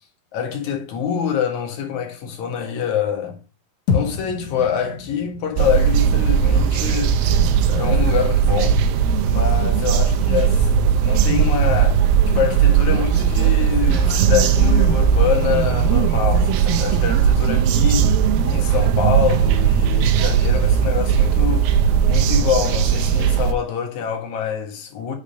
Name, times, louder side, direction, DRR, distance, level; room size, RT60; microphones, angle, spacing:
voice 1, 0.3-3.4 3.9-8.8 9.2-10.7 11.0-12.0 12.3-21.8 22.0-25.1, left 8 dB, 55° left, 2.6 m, -25 dB
sound 1, 3.9-8.2, left 5 dB, 75° left, 1.6 m, -29 dB
sound 2, 5.6-23.5, right 7 dB, 80° right, 2.3 m, -17 dB
6.9 x 5.0 x 5.1 m
omnidirectional pair, 4.4 m